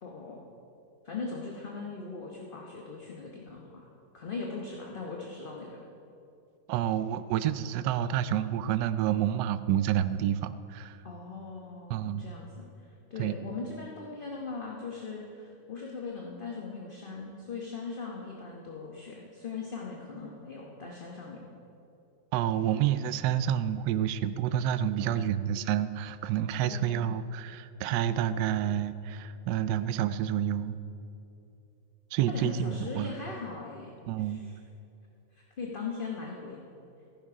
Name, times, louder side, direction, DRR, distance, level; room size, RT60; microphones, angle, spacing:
voice 1, 0.0-0.4 1.0-5.8 11.0-21.5 25.0-25.3 26.6-27.0 32.3-34.5 35.3-36.6, left 4 dB, 35° left, -1 dB, 1.0 m, -40 dB
voice 2, 6.7-11.0 11.9-12.2 13.2-13.3 22.3-30.8 32.1-33.1 34.1-34.4, right 10 dB, 75° right, 12 dB, 1.0 m, -29 dB
15.0 x 11.0 x 4.9 m, 2.7 s
omnidirectional pair, 2.2 m